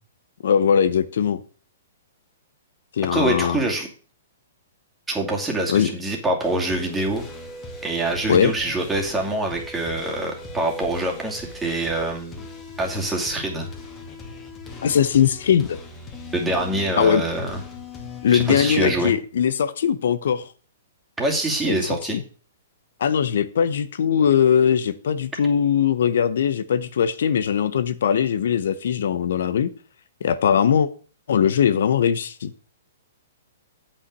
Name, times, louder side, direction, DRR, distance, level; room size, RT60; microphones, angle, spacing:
voice 1, 0.4-1.4 2.9-3.6 5.7-5.9 8.3-8.5 14.8-15.8 17.0-17.2 18.2-20.5 21.7-22.2 23.0-29.7 30.2-30.9 31.3-32.5, left 8 dB, 70° left, 14 dB, 0.7 m, -20 dB
voice 2, 3.1-3.9 5.1-7.2 7.8-12.4 12.8-13.7 16.3-17.6 18.3-19.1 21.2-22.2, right 2 dB, 10° right, 0 dB, 2.5 m, -25 dB
sound 1, 6.4-19.1, left 3 dB, 20° left, 2.2 m, -39 dB
8.3 x 5.6 x 6.6 m, 0.40 s
hypercardioid pair, 135°, 0 cm